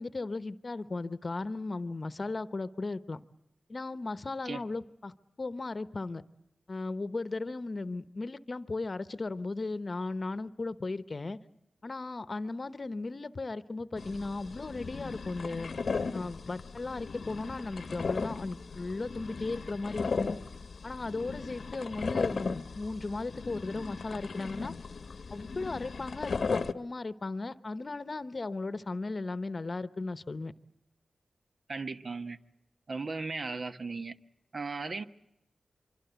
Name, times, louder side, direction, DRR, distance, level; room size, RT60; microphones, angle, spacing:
voice 1, 0.0-3.2 3.7-6.2 6.7-11.4 11.8-15.7 16.1-20.4 20.8-24.8 25.3-30.5, left 3 dB, 40° left, 0.9 m, -36 dB
sound 1, 14.0-26.7, left 4 dB, 65° left, 1.0 m, -37 dB
voice 2, 31.7-32.4 32.9-34.2 34.5-35.0, right 4 dB, 55° right, 1.1 m, -36 dB
25.0 x 24.0 x 8.1 m
wide cardioid pair, 85°, 0 cm